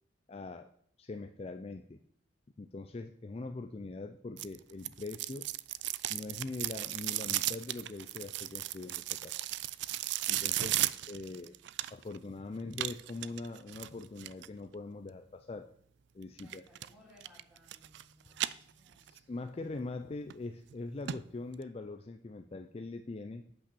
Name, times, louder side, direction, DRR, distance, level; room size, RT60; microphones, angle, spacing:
voice 1, 0.3-0.7 1.0-2.0 2.6-5.5 6.1-9.4 10.3-11.6 11.9-15.7 16.1-16.6 19.0-23.4, left 3 dB, 30° left, 7 dB, 0.4 m, -42 dB
sound 1, 4.4-12.2 12.7-14.5 16.4-16.9 17.2-18.0 18.3-19.2 19.6-19.7 20.3-20.4 20.7-20.8 21.1-21.2 21.5-21.6, right 15 dB, 60° right, 0.3 m, -35 dB
voice 2, 16.4-19.2, left 1 dB, 5° right, -5 dB, 3.6 m, -63 dB
8.5 x 5.5 x 6.9 m, 0.65 s
head